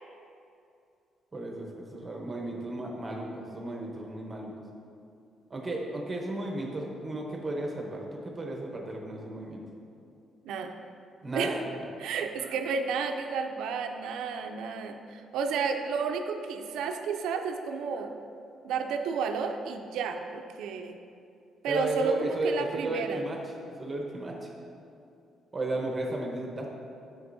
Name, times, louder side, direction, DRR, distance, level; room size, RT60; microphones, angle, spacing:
voice 1, 1.3-4.5 5.5-9.6 11.2-11.6 21.7-23.4 23.8-24.5 25.5-26.7, right 2 dB, 30° right, 0 dB, 0.9 m, -34 dB
voice 2, 12.0-18.1 18.6-21.0 21.6-23.2, right 5 dB, 85° right, 6 dB, 0.4 m, -31 dB
7.8 x 6.4 x 2.6 m, 2.6 s
cardioid pair, 90°, 0 cm